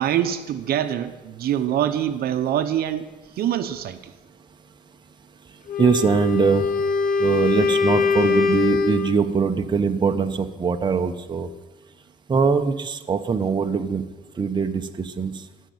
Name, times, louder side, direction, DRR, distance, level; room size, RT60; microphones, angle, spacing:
voice 1, 0.0-3.1 3.4-4.0, right 10 dB, 65° right, 9 dB, 0.9 m, -24 dB
Wind instrument woodwind instrument, 5.7-9.2, left 4 dB, 55° left, 1.0 m, -22 dB
voice 2, 5.8-6.7 7.2-11.5 12.3-14.1 14.4-15.4, right 5 dB, 25° right, 5 dB, 0.9 m, -22 dB
14.5 x 6.6 x 9.5 m, 1.2 s
cardioid pair, 110°, 17 cm